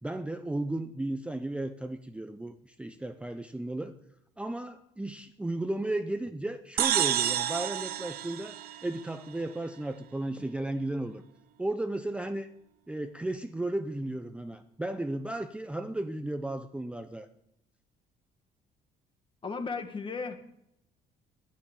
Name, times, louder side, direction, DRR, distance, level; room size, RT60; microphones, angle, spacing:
voice 1, 0.0-4.0 4.4-8.6 8.8-11.2 11.6-12.5 12.9-17.3, right 1 dB, 5° right, 8 dB, 0.6 m, -34 dB
sound 1, 6.8-9.4, right 11 dB, 65° right, 0.9 m, -30 dB
voice 2, 19.4-20.4, left 4 dB, 30° left, 8 dB, 1.6 m, -35 dB
11.0 x 9.6 x 7.6 m, 0.80 s
cardioid pair, 110°, 17 cm